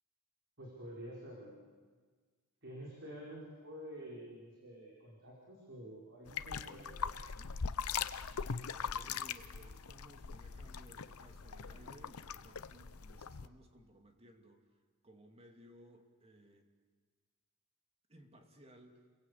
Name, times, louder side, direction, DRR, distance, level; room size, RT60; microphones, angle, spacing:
voice 1, 0.6-1.6 2.6-7.5, equal, 55° right, -3 dB, 5.2 m, -49 dB
sound 1, 6.3-13.5, left 6 dB, 75° left, 0.8 m, -41 dB
voice 2, 8.2-14.6 15.0-16.7 18.1-19.0, right 1 dB, 30° right, 4 dB, 2.6 m, -60 dB
30.0 x 22.5 x 8.4 m, 1.5 s
head